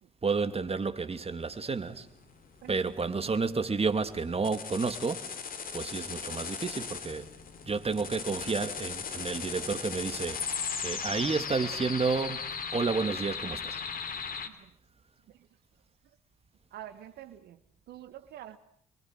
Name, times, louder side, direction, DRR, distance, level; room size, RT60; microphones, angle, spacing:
voice 1, 0.2-2.1 2.7-5.3 5.7-7.3 7.6-13.8, right 4 dB, 35° right, 2.6 m, -31 dB
sound 1, 1.5-14.5, left 6 dB, 60° left, 3.1 m, -38 dB
voice 2, 2.6-2.9 8.1-8.3 14.5-14.7 15.3-15.5 16.7-17.6 17.9-18.6, right 12 dB, 75° right, 1.3 m, -47 dB
28.5 x 23.5 x 7.8 m
hypercardioid pair, 45°, 17 cm